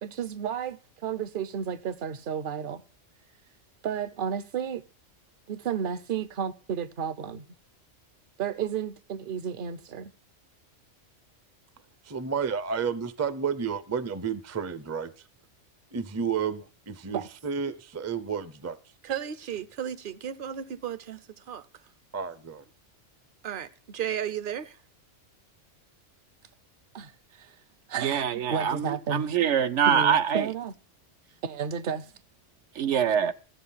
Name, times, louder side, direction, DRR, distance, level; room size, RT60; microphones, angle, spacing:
voice 1, 0.0-2.8 3.8-4.8 5.5-7.4 8.4-10.1 17.1-17.3 19.0-21.7 23.4-24.8 26.9-27.6 27.9-29.3 29.8-30.8 31.4-32.1, right 8 dB, 50° right, 0.8 m, -33 dB
voice 2, 12.0-15.2 15.9-18.8 22.1-22.6, right 6 dB, 20° right, 0.4 m, -31 dB
voice 3, 28.0-30.5 32.8-33.3, right 8 dB, 75° right, 1.0 m, -24 dB
13.5 x 7.9 x 5.6 m
omnidirectional pair, 1.3 m